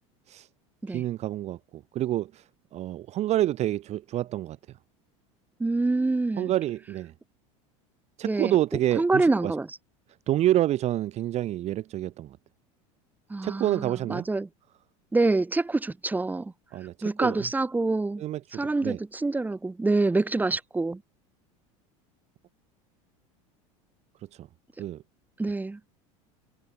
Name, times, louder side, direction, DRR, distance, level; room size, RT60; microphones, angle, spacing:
voice 1, 0.9-2.4 2.7-4.6 6.4-7.1 8.2-9.5 10.3-12.4 13.4-14.3 16.7-17.5 18.2-18.4 18.8-19.0 24.4-24.5 24.8-25.0, right 13 dB, 40° right, 1.0 m, -28 dB
voice 2, 5.6-6.5 8.2-8.5 9.0-9.7 13.3-14.5 15.1-16.5 17.0-18.2 18.5-21.0 25.4-25.8, right 3 dB, 10° right, 2.1 m, -26 dB
supercardioid pair, 115°, 17 cm